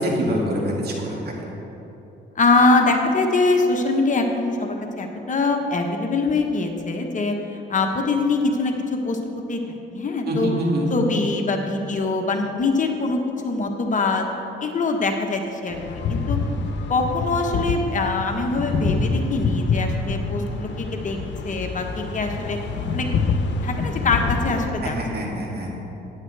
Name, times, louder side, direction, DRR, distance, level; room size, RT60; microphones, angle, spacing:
voice 1, 0.0-1.3 10.3-10.9 24.8-25.7, equal, 55° right, -2 dB, 2.4 m, -25 dB
voice 2, 2.3-7.4 7.7-9.2 9.5-10.5 10.9-14.3 14.6-16.4 16.9-21.2 21.4-22.6 22.9-23.1 23.6-25.0 25.3-25.4, left 3 dB, 40° left, 3 dB, 1.2 m, -23 dB
sound 1, 15.7-24.7, left 4 dB, 65° left, 0.9 m, -26 dB
14.5 x 9.9 x 3.4 m, 3.0 s
cardioid pair, 90°, 20 cm